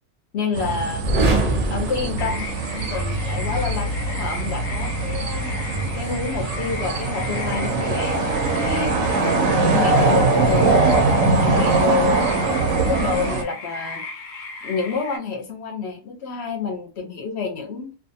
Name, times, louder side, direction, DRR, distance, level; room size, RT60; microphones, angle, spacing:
voice 1, 0.3-1.1 1.7-10.8 11.2-14.0 14.6-17.9, left 5 dB, 60° left, 0.8 m, -28 dB
sound 1, 0.5-13.4, right 3 dB, 85° right, 1.0 m, -22 dB
sound 2, 1.0-3.0, right 2 dB, 45° right, 0.5 m, -23 dB
sound 3, 2.2-15.2, left 3 dB, 90° left, 1.0 m, -36 dB
2.5 x 2.4 x 2.6 m
omnidirectional pair, 1.3 m